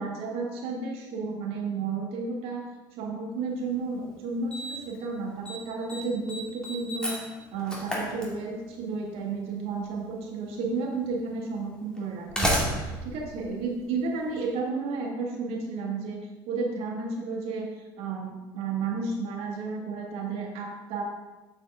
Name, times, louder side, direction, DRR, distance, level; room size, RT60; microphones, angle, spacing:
voice 1, 0.0-2.6 2.9-7.2 7.5-16.2 16.5-17.7 18.0-21.0, right 4 dB, 65° right, 0 dB, 2.0 m, -32 dB
Slam, 3.7-3.8 4.5-5.0 5.2-5.6 5.9-8.8 9.9-10.0 10.9-11.0 12.0-14.3, equal, 5° left, 2.2 m, -31 dB
8.1 x 6.4 x 3.6 m, 1.1 s
supercardioid pair, 90°, 11 cm